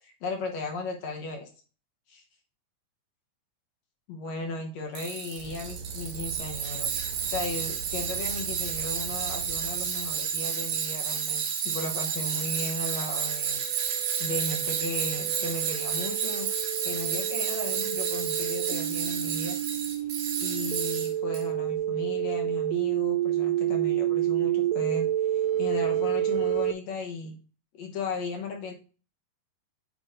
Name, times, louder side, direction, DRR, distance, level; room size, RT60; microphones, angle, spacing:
voice 1, 0.0-1.5 2.1-2.2 4.1-6.9 7.3-16.5 16.8-19.6 20.4-27.4 27.7-28.7, left 3 dB, 65° left, 2 dB, 2.0 m, -36 dB
Tools, 4.9-21.4, right 7 dB, 60° right, 2.2 m, -31 dB
sound 1, 5.4-10.4, right 5 dB, 35° right, 3.3 m, -42 dB
sound 2, 13.5-26.7, right 12 dB, 85° right, 2.2 m, -29 dB
8.4 x 7.9 x 2.6 m, 0.37 s
omnidirectional pair, 3.7 m